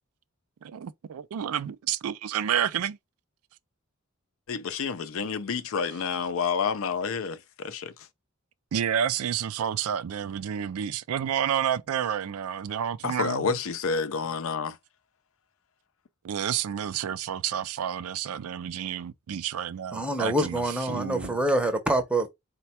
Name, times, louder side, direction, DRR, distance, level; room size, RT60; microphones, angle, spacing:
voice 1, 0.6-3.0 8.7-13.6 16.2-20.6 20.9-21.3, right 9 dB, 80° right, 0.4 m, -30 dB
voice 2, 4.5-7.9 13.0-14.8, left 5 dB, 65° left, 0.5 m, -29 dB
voice 3, 19.9-22.3, right 1 dB, 5° right, 0.7 m, -26 dB
4.2 x 2.2 x 4.2 m
head